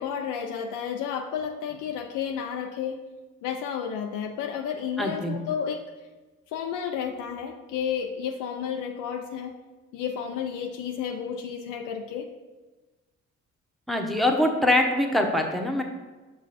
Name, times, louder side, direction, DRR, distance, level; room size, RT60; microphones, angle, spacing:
voice 1, 0.0-3.0 3.4-5.8 6.5-9.5 9.9-12.3, left 7 dB, 85° left, 3 dB, 0.6 m, -31 dB
voice 2, 5.0-5.4 13.9-15.8, left 1 dB, ahead, 2 dB, 1.0 m, -23 dB
6.2 x 5.9 x 4.2 m, 1.2 s
cardioid pair, 90°, 30 cm